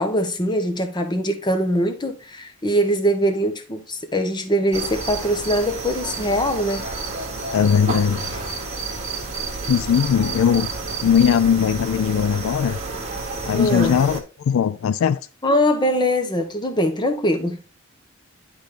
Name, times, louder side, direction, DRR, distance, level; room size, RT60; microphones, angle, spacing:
voice 1, 0.0-6.8 13.5-14.0 15.4-17.6, equal, 20° left, 1.0 m, -22 dB
sound 1, 4.7-14.2, right 3 dB, 30° right, 1.3 m, -30 dB
voice 2, 7.5-8.3 9.7-10.7 11.0-12.8 13.5-15.2, left 8 dB, 75° left, 0.3 m, -19 dB
10.5 x 3.5 x 3.7 m
head